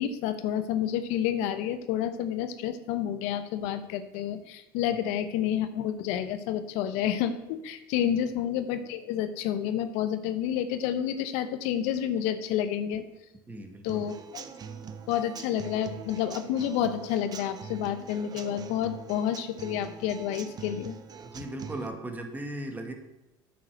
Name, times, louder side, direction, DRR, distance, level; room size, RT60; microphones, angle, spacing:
voice 1, 0.0-13.0 13.8-14.4 15.1-21.0, left 10 dB, 75° left, 10 dB, 0.9 m, -29 dB
voice 2, 13.5-14.1 21.2-22.9, right 1 dB, 15° right, 4 dB, 1.9 m, -38 dB
Human voice / Acoustic guitar / Drum, 13.9-21.9, right 6 dB, 35° right, 0.9 m, -43 dB
9.0 x 6.9 x 6.4 m, 0.91 s
supercardioid pair, 100°, 11 cm